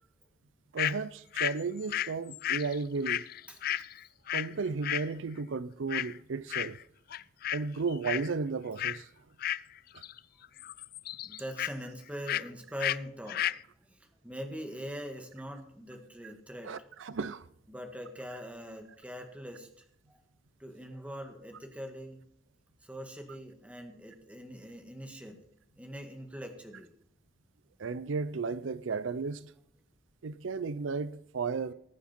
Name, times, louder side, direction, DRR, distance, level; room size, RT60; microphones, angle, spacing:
voice 1, 0.7-3.2 4.3-6.8 7.5-9.1 16.7-17.5 27.8-29.5 30.2-31.7, right 4 dB, 80° right, 0.5 m, -34 dB
sound 1, 0.8-1.0 1.3-4.5 4.8-5.1 5.9-6.2 6.5-6.8 7.1-7.6 7.9-8.3 8.8-9.0 9.4-10.2 10.4-11.7 12.3-12.5 12.8-13.0 13.3-13.6, left 12 dB, 50° left, 0.3 m, -33 dB
voice 2, 11.2-16.9 17.7-20.2 20.6-22.2 22.8-25.5 25.8-26.9, equal, 5° right, 1.8 m, -43 dB
19.5 x 7.1 x 4.4 m
head